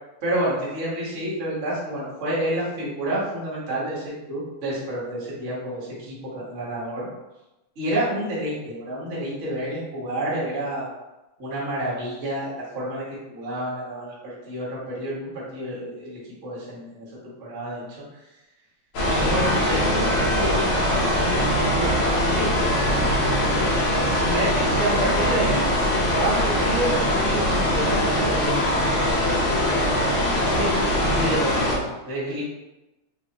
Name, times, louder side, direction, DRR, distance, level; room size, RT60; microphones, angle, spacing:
voice 1, 0.2-7.1 7.7-10.9 11.4-17.1 17.4-18.0 19.0-23.7 24.2-28.6 28.9-29.8 30.4-32.4, right 1 dB, 80° right, -7 dB, 0.6 m, -29 dB
sound 1, 18.9-31.8, left 1 dB, 70° left, 1.4 m, -22 dB
5.4 x 2.7 x 2.9 m, 1.0 s
omnidirectional pair, 3.8 m